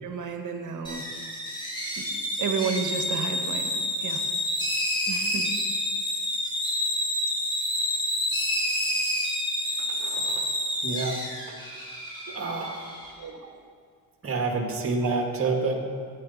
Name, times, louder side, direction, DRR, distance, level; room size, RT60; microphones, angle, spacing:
voice 1, 0.0-1.0 2.0-2.1 2.4-3.7 4.0-4.2 5.1-5.5 13.2-13.5 15.0-15.2, right 6 dB, 50° right, 4 dB, 1.6 m, -31 dB
sound 1, 0.8-13.1, left 1 dB, 10° left, 3.7 m, -29 dB
voice 2, 10.0-10.5 10.8-11.2 12.3-12.9 14.2-15.8, right 3 dB, 35° right, 1 dB, 1.9 m, -28 dB
15.0 x 10.0 x 4.2 m, 2.1 s
cardioid pair, 125°, 39 cm